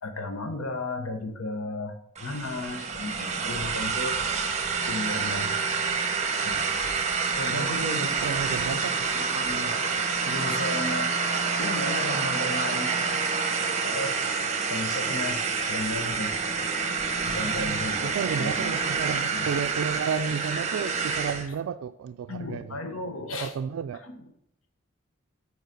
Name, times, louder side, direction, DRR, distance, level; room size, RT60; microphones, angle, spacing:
voice 1, 0.0-1.9 2.2-4.2 4.9-5.5 6.4-6.6 7.0-7.1 7.4-8.8 9.1-9.8 10.2-11.1 11.6-12.9 13.8-14.2 14.7-16.3 17.2-18.7 19.2-19.5 22.3-23.5 24.0-24.2, left 2 dB, 85° left, 1.0 m, -34 dB
sound 1, 2.2-21.5, right 5 dB, 35° right, 0.9 m, -28 dB
voice 2, 7.5-9.1 17.3-22.8 23.3-24.0, right 7 dB, 80° right, 0.3 m, -32 dB
9.3 x 4.7 x 5.1 m
head